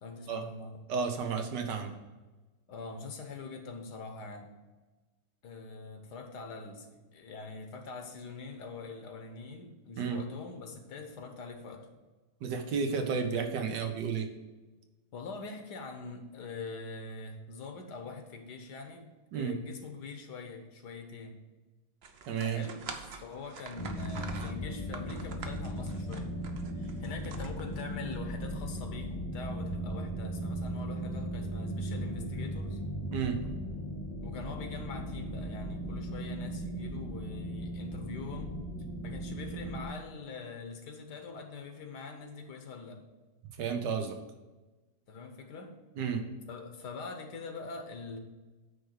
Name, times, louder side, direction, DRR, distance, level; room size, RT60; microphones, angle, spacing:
voice 1, 0.0-0.8 2.7-4.5 5.4-11.9 15.1-19.1 19.3-21.4 22.5-22.8 23.2-26.3 26.7-32.8 34.2-38.6 39.0-43.0 45.1-45.8 46.5-48.2, left 4 dB, 75° left, 5 dB, 1.6 m, -43 dB
voice 2, 0.9-1.9 10.0-10.2 12.4-14.3 19.3-19.5 22.3-22.6 33.1-33.4 43.6-44.2 45.9-46.2, right 6 dB, 85° right, 5 dB, 1.6 m, -32 dB
sound 1, 22.0-28.1, right 4 dB, 55° right, 0.7 m, -46 dB
sound 2, 23.8-39.9, right 1 dB, 25° left, 0.9 m, -37 dB
9.2 x 3.3 x 6.4 m, 1.2 s
omnidirectional pair, 1.8 m